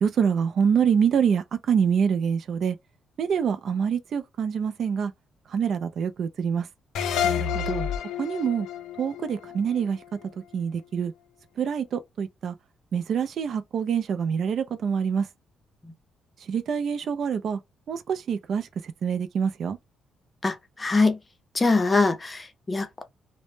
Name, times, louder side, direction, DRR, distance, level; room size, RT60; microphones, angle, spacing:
voice 1, 0.0-2.8 3.2-5.1 5.5-6.7 8.2-8.7 9.0-10.0 10.5-11.1 11.6-12.5 12.9-15.3 16.5-17.6 17.9-18.7 19.0-19.8, right 7 dB, 60° right, 0.4 m, -25 dB
sound 1, 6.9-10.3, left 7 dB, 85° left, 0.4 m, -29 dB
voice 2, 7.2-7.9 15.8-15.9 20.4-21.2 21.5-23.0, left 3 dB, 25° left, 0.5 m, -24 dB
2.0 x 2.0 x 3.0 m
cardioid pair, 90°, 0 cm